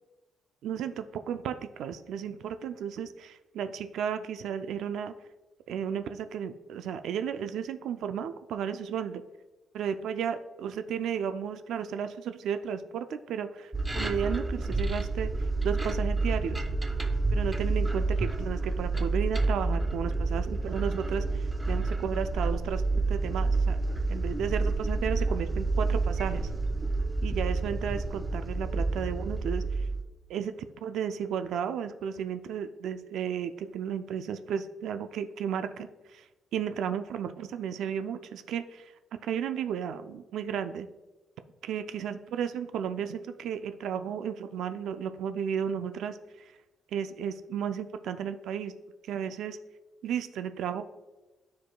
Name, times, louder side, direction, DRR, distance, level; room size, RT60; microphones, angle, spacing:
voice 1, 0.6-5.1 5.7-9.2 9.7-15.3 15.6-16.6 17.3-22.8 23.1-23.8 24.1-26.5 27.2-29.9 30.3-38.9 39.2-40.9 41.6-46.5 46.9-48.7 49.1-49.6 50.0-50.8, right 8 dB, 85° right, 9 dB, 0.3 m, -33 dB
sound 1, 13.7-30.0, right 3 dB, 15° right, 0.5 m, -29 dB
12.0 x 4.7 x 2.2 m, 1.1 s
cardioid pair, 130°, 0 cm